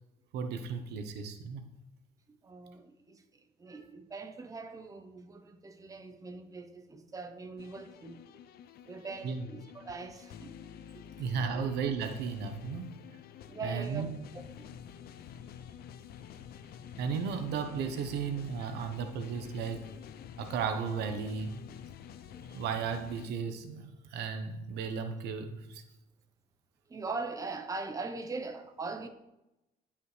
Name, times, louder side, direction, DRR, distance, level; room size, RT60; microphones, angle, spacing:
voice 1, 0.3-1.6 9.2-9.4 11.2-13.0 13.6-14.1 17.0-19.9 20.4-21.6 22.5-25.8, right 6 dB, 80° right, 1.0 m, -35 dB
voice 2, 2.4-3.2 3.6-8.2 8.9-10.5 10.9-11.0 11.5-11.7 13.5-14.1 14.3-14.8 15.5-15.8 16.2-16.3 22.1-22.6 26.9-29.1, right 3 dB, 20° right, 0.9 m, -41 dB
sound 1, 7.6-23.3, left 9 dB, 65° left, 0.6 m, -49 dB
16.0 x 5.5 x 3.3 m
cardioid pair, 110°, 17 cm